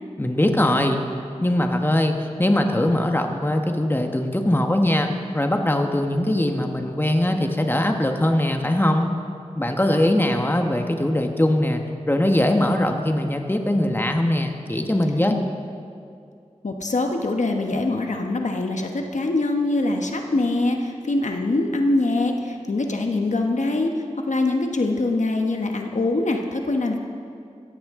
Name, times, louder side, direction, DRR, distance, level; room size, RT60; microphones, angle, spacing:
voice 1, 0.2-1.0 1.4-9.1 9.6-15.3, left 1 dB, 15° left, 4 dB, 1.1 m, -21 dB
voice 2, 16.6-27.0, left 2 dB, 80° left, 3 dB, 1.1 m, -23 dB
16.0 x 14.0 x 3.7 m, 2.4 s
wide cardioid pair, 55°, 12 cm